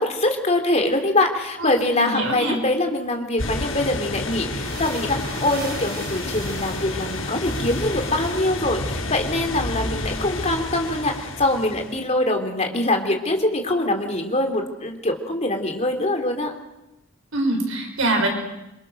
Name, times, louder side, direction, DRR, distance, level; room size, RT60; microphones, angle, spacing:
voice 1, 0.0-16.5, left 1 dB, 35° left, 4 dB, 3.5 m, -23 dB
voice 2, 1.6-2.6 17.3-18.3, right 1 dB, 80° right, 3 dB, 6.2 m, -24 dB
sound 1, 3.4-12.1, left 2 dB, 75° left, 5.8 m, -30 dB
sound 2, 4.5-8.6, right 3 dB, 50° right, 6.1 m, -39 dB
27.5 x 25.5 x 6.7 m, 0.93 s
head